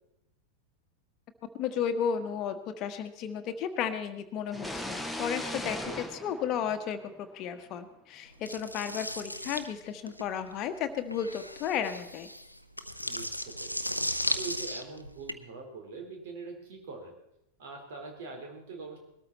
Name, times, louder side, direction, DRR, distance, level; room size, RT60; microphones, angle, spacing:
voice 1, 1.6-12.3, left 8 dB, 35° left, 7 dB, 1.4 m, -33 dB
sound 1, 4.5-7.3, left 1 dB, ahead, 1.3 m, -38 dB
voice 2, 5.5-6.1 13.0-17.1 17.6-19.0, right 4 dB, 55° right, 3 dB, 4.1 m, -43 dB
sound 2, 8.5-15.3, equal, 90° left, 0.7 m, -36 dB
20.5 x 13.5 x 4.3 m, 0.83 s
figure-of-eight pair, 90°, 0 cm